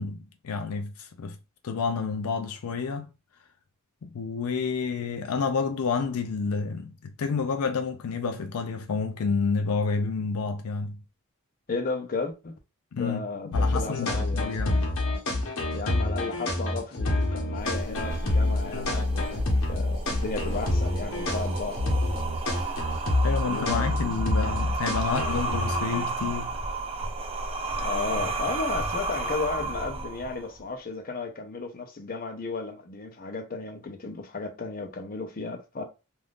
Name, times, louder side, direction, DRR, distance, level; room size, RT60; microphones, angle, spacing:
voice 1, 0.0-1.4 1.6-3.1 4.0-11.0 12.9-14.9 23.2-26.6, left 5 dB, 85° left, 0.4 m, -29 dB
voice 2, 11.7-12.6 13.0-14.5 15.7-21.8 23.4-24.3 25.1-25.4 27.8-35.8, left 3 dB, 40° left, 0.7 m, -34 dB
sound 1, 13.5-26.0, left 2 dB, 65° left, 1.0 m, -27 dB
sound 2, 17.6-30.6, right 2 dB, 25° right, 0.5 m, -32 dB
3.4 x 2.6 x 2.4 m
head